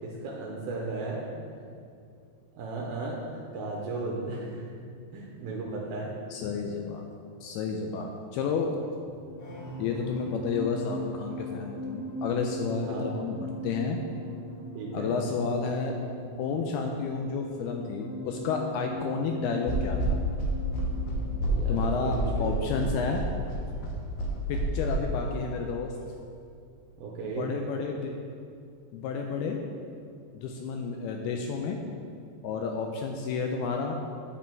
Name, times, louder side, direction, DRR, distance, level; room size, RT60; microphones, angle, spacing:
voice 1, 0.0-1.2 2.5-4.7 5.1-6.1 9.6-9.7 12.7-13.2 14.7-15.2 19.2-19.5 21.4-22.7 27.0-27.5, right 3 dB, 75° right, -3 dB, 2.4 m, -35 dB
voice 2, 6.3-7.1 7.4-8.8 9.8-14.0 14.9-15.9 16.4-20.2 21.7-23.3 24.5-25.9 27.4-28.1 28.9-29.6 30.3-31.8 32.4-33.9, left 5 dB, 85° left, 3 dB, 2.3 m, -31 dB
sound 1, 9.0-25.7 26.0-26.3, equal, 50° left, 3.0 m, -40 dB
sound 2, 19.7-24.9, right 1 dB, 65° left, 2.4 m, -29 dB
8.6 x 7.6 x 4.5 m, 2.4 s
omnidirectional pair, 5.0 m